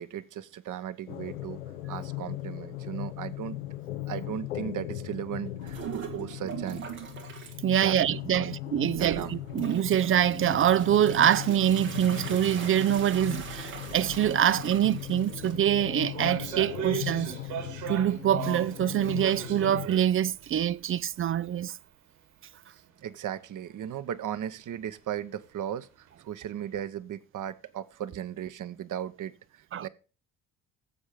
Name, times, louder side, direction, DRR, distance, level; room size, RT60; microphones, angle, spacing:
voice 1, 0.0-1.6 1.9-3.6 4.1-6.8 7.8-8.5 8.8-9.3 23.0-25.9 26.2-29.3 29.8-29.9, right 10 dB, 50° right, 1.1 m, -36 dB
sound 1, 1.1-19.9, left 14 dB, 85° left, 0.8 m, -38 dB
sound 2, 5.6-7.6 8.0-8.5 8.9-21.6, right 7 dB, 85° right, 2.4 m, -42 dB
voice 2, 7.6-17.3 17.9-21.8 29.7-29.9, right 10 dB, 30° right, 0.5 m, -25 dB
sound 3, 15.0-15.2 15.4-18.8 19.2-20.1 20.4-20.5 21.2-21.3, right 9 dB, 65° right, 3.2 m, -36 dB
15.0 x 7.5 x 5.1 m
hypercardioid pair, 55°, 41 cm